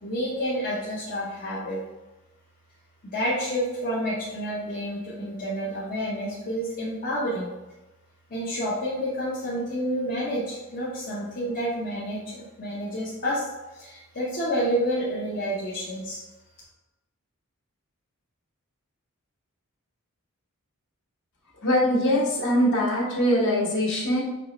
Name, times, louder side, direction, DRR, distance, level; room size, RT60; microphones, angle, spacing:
voice 1, 0.0-1.8 3.1-7.5 8.3-16.2, equal, 40° left, -7 dB, 0.8 m, -29 dB
voice 2, 21.6-24.2, equal, 55° left, -4 dB, 1.2 m, -22 dB
5.3 x 3.1 x 3.0 m, 1.1 s
head